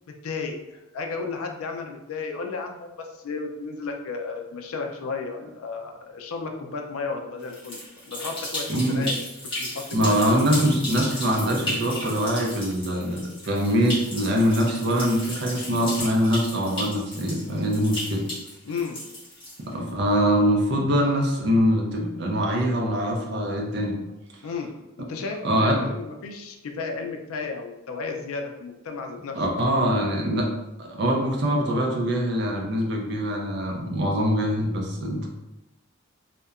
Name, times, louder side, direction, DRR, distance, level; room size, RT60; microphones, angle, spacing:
voice 1, 0.2-0.6 0.9-9.3 9.6-10.4 18.6-19.0 24.4-29.5, left 4 dB, 80° left, 3 dB, 0.4 m, -33 dB
sound 1, 7.4-19.9, left 1 dB, 25° left, 0.9 m, -35 dB
voice 2, 8.7-9.1 9.9-18.3 19.7-24.0 25.4-25.8 29.4-30.5 30.8-35.3, equal, 50° right, 0 dB, 0.5 m, -23 dB
2.7 x 2.1 x 2.4 m, 0.95 s
head